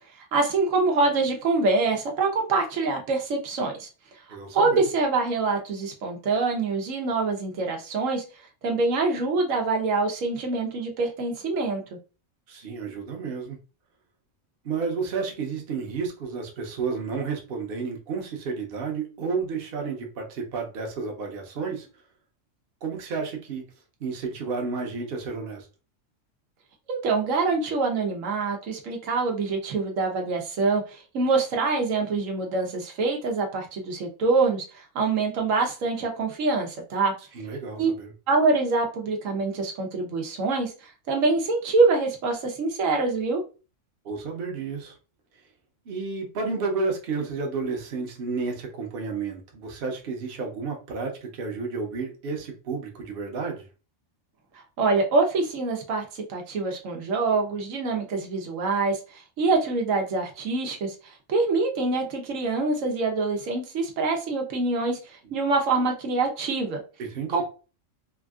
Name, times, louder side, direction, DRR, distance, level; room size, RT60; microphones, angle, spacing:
voice 1, 0.2-3.9 4.5-8.2 8.6-12.0 26.9-37.1 37.8-37.9 38.3-43.4 54.8-66.8 67.3-67.4, right 3 dB, 90° right, 2 dB, 1.1 m, -25 dB
voice 2, 4.3-4.9 12.5-13.6 14.6-21.9 22.8-23.6 24.0-25.7 37.3-38.1 44.0-44.9 45.9-53.7 67.0-67.4, right 4 dB, 55° right, 2 dB, 0.9 m, -31 dB
3.5 x 2.4 x 2.3 m, 0.33 s
omnidirectional pair, 1.3 m